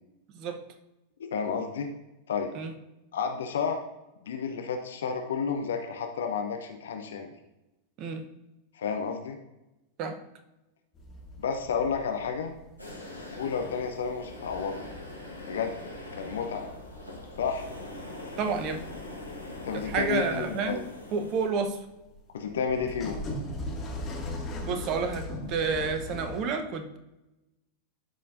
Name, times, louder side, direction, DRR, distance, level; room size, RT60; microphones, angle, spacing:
voice 1, 1.2-1.9 2.3-2.5 3.1-3.8 4.2-7.3 8.7-9.4 11.4-12.5 13.3-14.8 15.5-15.7 16.1-16.7 17.4-17.7 19.6-20.8 22.3-23.2, left 6 dB, 65° left, 5 dB, 0.7 m, -31 dB
sound 1, 10.9-26.4, left 1 dB, 25° left, 2.1 m, -41 dB
sound 2, 12.8-21.5, left 2 dB, 90° left, 1.4 m, -43 dB
voice 2, 18.4-18.8 19.7-20.8 21.1-21.8 24.6-27.0, right 5 dB, 40° right, 7 dB, 0.9 m, -30 dB
12.5 x 5.4 x 2.6 m, 0.98 s
figure-of-eight pair, 90°, 0 cm